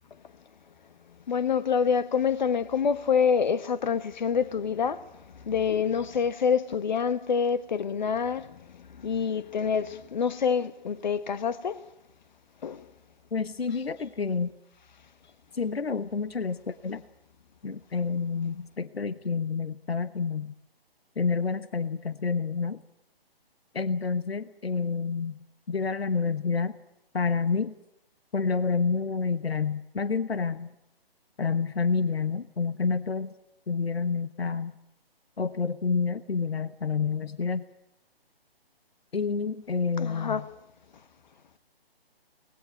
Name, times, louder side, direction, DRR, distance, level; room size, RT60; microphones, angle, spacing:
voice 1, 1.3-5.1 5.4-8.5 9.0-11.8 12.6-12.8 40.0-40.4, left 6 dB, 45° left, 1.3 m, -26 dB
voice 2, 13.3-14.5 15.5-17.0 17.6-20.5 21.2-22.8 23.7-25.4 25.7-26.8 27.1-27.7 28.3-30.7 31.4-33.3 33.7-34.7 35.4-37.6 39.1-40.5, left 5 dB, 75° left, 1.1 m, -28 dB
24.0 x 19.5 x 8.7 m
figure-of-eight pair, 140°, 31 cm